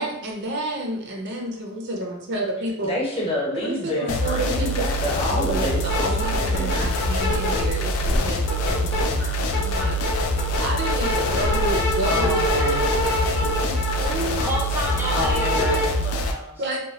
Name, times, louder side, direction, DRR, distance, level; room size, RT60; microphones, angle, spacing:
voice 1, 0.0-2.9 3.5-4.9 5.3-10.0 10.6-14.5 16.6-16.8, right 1 dB, 55° right, 1 dB, 0.5 m, -30 dB
voice 2, 2.8-6.7 12.0-12.9 14.9-15.9, equal, 25° left, -4 dB, 0.8 m, -29 dB
sound 1, 4.1-16.3, left 1 dB, 85° left, 0.3 m, -25 dB
sound 2, 5.5-5.6 5.8-7.7 8.0-9.0 9.4-15.8, left 1 dB, 55° left, 0.8 m, -25 dB
voice 3, 14.4-16.6, right 1 dB, 10° right, -4 dB, 0.6 m, -31 dB
2.9 x 2.1 x 2.7 m, 0.74 s
head